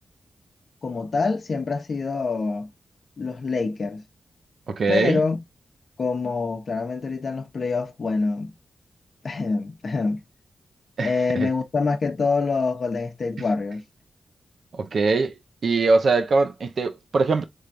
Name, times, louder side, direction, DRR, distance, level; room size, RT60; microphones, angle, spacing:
voice 1, 0.8-2.7 3.2-4.0 4.9-5.4 6.0-8.5 9.2-10.2 11.0-13.8, left 4 dB, 65° left, 0.7 m, -25 dB
voice 2, 4.7-5.2 11.0-11.5 14.7-15.4 15.6-17.4, right 3 dB, 70° right, 0.7 m, -22 dB
3.5 x 3.3 x 2.5 m
supercardioid pair, 45°, 0 cm